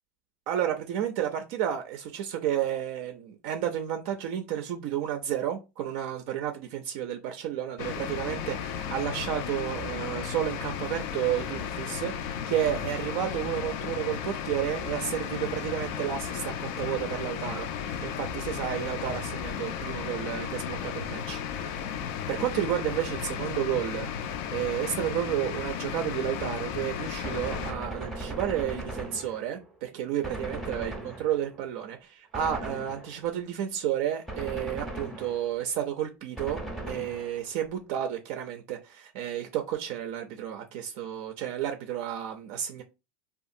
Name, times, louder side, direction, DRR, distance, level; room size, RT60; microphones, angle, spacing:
voice 1, 0.5-21.8 22.3-24.1 24.5-30.9 31.2-36.6 36.9-42.8, right 10 dB, 60° right, 0.4 m, -31 dB
sound 1, 7.8-27.7, left 8 dB, 55° left, 0.3 m, -34 dB
Gunshot gunfire, 27.2-29.7 30.2-31.6 32.3-33.4 34.3-35.7 36.4-37.6, right 1 dB, ahead, 0.6 m, -38 dB
2.7 x 2.3 x 2.5 m
supercardioid pair, 130°, 7 cm